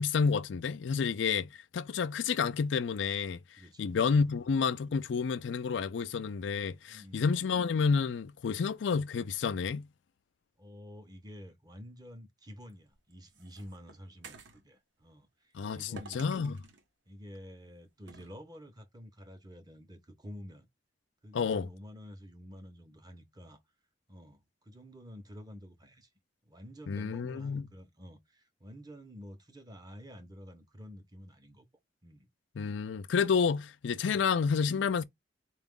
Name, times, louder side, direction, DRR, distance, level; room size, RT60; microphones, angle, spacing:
voice 1, 0.0-3.4 3.8-9.9 15.5-16.6 21.3-21.7 26.9-27.6 32.6-35.0, left 5 dB, 85° left, 0.4 m, -30 dB
voice 2, 3.6-4.3 6.9-7.4 10.6-16.5 17.1-20.7 21.2-23.6 24.1-26.1 26.4-31.7 32.0-32.3 34.0-34.3, equal, 20° right, 0.8 m, -50 dB
sound 1, 12.7-14.6 16.0-16.8 18.1-18.3, right 4 dB, 85° right, 0.9 m, -51 dB
4.4 x 2.4 x 3.6 m
head